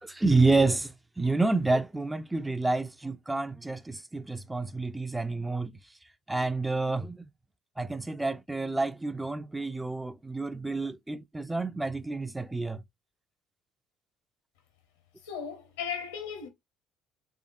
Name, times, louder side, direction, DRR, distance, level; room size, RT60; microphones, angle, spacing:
voice 1, 0.0-5.7 6.3-7.3 7.8-12.8, right 3 dB, 10° right, 0.4 m, -29 dB
voice 2, 15.2-16.5, left 7 dB, 75° left, 1.0 m, -36 dB
3.6 x 3.4 x 2.6 m
figure-of-eight pair, 55°, 0 cm